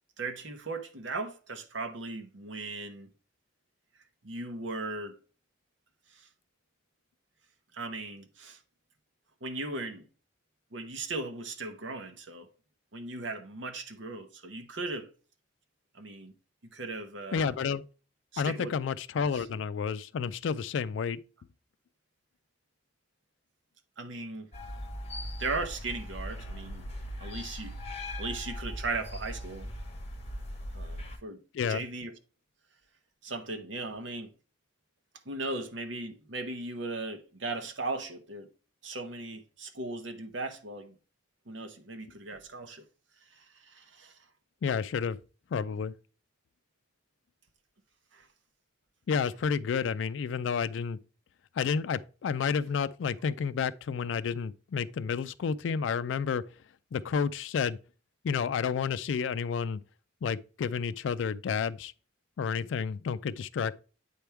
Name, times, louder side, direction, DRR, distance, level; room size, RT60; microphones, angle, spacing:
voice 1, 0.2-3.1 4.2-5.2 6.1-6.3 7.7-8.6 9.4-10.1 10.7-12.5 12.9-15.1 15.9-16.3 16.7-17.5 18.3-18.8 19.3-19.4 24.0-24.5 25.4-26.9 27.2-27.8 28.2-29.7 30.7-31.4 31.7-32.1 33.2-34.3 35.2-38.5 38.8-41.0 41.5-42.8 43.3-44.2 48.1-48.3, right 3 dB, 90° right, 1.0 m, -37 dB
voice 2, 17.3-17.8 18.4-21.2 31.5-31.8 44.6-45.2 45.5-45.9 49.1-51.0 51.5-56.4 56.9-57.8 58.2-59.8 60.2-61.9 62.4-63.7, left 6 dB, 85° left, 0.3 m, -30 dB
sound 1, 24.5-31.2, equal, 35° left, 1.4 m, -39 dB
8.5 x 3.5 x 4.5 m
head